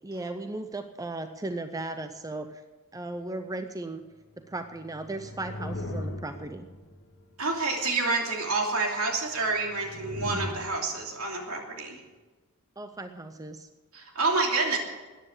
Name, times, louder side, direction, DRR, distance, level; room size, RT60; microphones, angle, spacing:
voice 1, 0.0-2.6 2.9-4.0 4.4-6.6 12.8-13.7, right 2 dB, 15° right, 8 dB, 0.6 m, -36 dB
sound 1, 4.3-7.3 9.4-11.3, left 1 dB, 55° left, 1.4 m, -39 dB
voice 2, 7.4-12.0 13.9-14.8, right 3 dB, 70° right, 1 dB, 2.9 m, -28 dB
14.0 x 9.9 x 7.2 m, 1.2 s
head